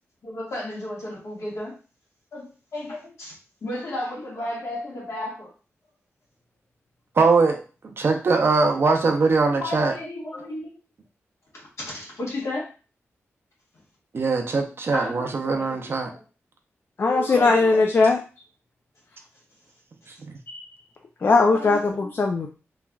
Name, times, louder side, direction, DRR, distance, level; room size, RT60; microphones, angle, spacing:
voice 1, 0.2-1.8 2.3-3.3 3.6-5.5 9.6-10.7 11.9-12.7 14.9-15.9 17.1-17.8 21.5-22.1, left 1 dB, 70° left, -4 dB, 1.3 m, -33 dB
voice 2, 7.2-7.6 8.0-9.9 14.1-16.1, right 4 dB, 50° right, 4 dB, 0.5 m, -21 dB
voice 3, 17.0-18.2 20.5-20.6 21.2-22.5, left 3 dB, 45° left, 2 dB, 0.4 m, -19 dB
3.2 x 2.4 x 2.2 m, 0.34 s
wide cardioid pair, 110°, 5 cm